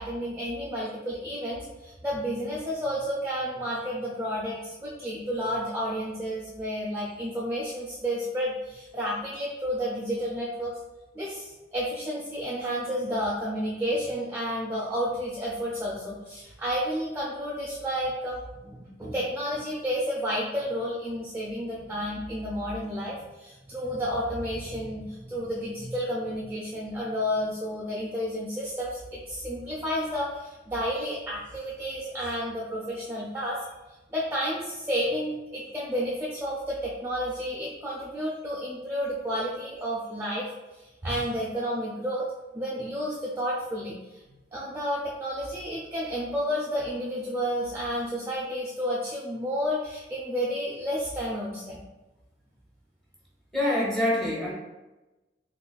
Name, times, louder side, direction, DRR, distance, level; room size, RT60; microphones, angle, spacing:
voice 1, 0.0-10.7 11.1-33.7 34.1-40.5 40.8-42.3 42.5-44.2 44.5-51.8, equal, 15° right, -5 dB, 0.4 m, -31 dB
voice 2, 53.5-54.5, left 1 dB, 5° left, -6 dB, 1.0 m, -25 dB
4.0 x 3.1 x 2.2 m, 1.1 s
head